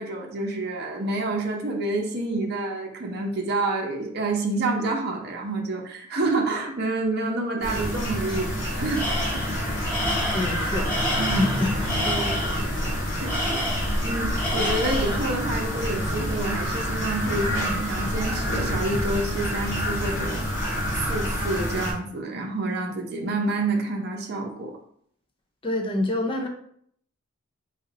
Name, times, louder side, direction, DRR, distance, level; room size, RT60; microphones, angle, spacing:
voice 1, 0.0-9.8 11.2-11.5 11.9-12.9 13.2-20.4 20.9-24.7, right 2 dB, 50° right, 1 dB, 0.7 m, -28 dB
sound 1, 7.6-21.9, equal, 40° left, 1.4 m, -27 dB
Tools, 9.0-9.5 9.9-12.6 13.3-14.1 14.4-15.2, equal, 10° left, 0.9 m, -29 dB
voice 2, 10.3-11.7 12.3-12.5 25.6-26.5, left 2 dB, 25° left, 2 dB, 0.5 m, -27 dB
4.1 x 2.5 x 3.9 m, 0.65 s
head